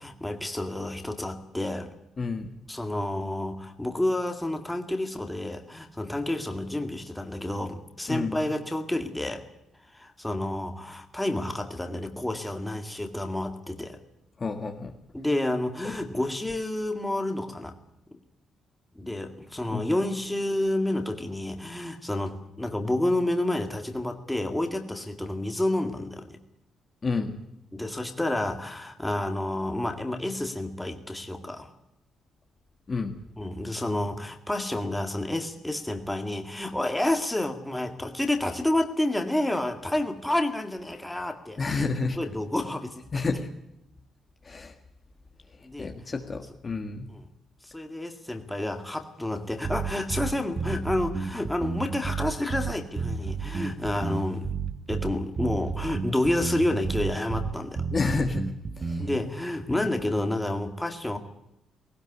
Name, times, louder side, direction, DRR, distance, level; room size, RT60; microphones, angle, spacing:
voice 1, 0.0-1.9 2.7-9.4 9.9-14.0 15.1-17.7 18.1-18.2 19.0-26.4 27.7-31.7 33.4-41.9 42.2-43.0 45.6-45.9 47.1-47.3 47.6-54.5 54.9-57.8 59.0-61.2, left 1 dB, 5° left, 5 dB, 2.1 m, -29 dB
voice 2, 2.2-2.5 8.1-8.5 14.4-14.9 15.8-15.9 19.7-19.9 27.0-27.3 32.9-33.1 41.6-42.2 43.1-43.5 44.4-44.7 45.6-47.1 57.9-58.5 58.8-59.1 59.7-59.9, left 4 dB, 25° left, 4 dB, 1.7 m, -30 dB
sound 1, 49.6-59.2, right 5 dB, 25° right, 1.3 m, -31 dB
19.5 x 18.0 x 9.8 m, 0.84 s
cardioid pair, 155°, 0 cm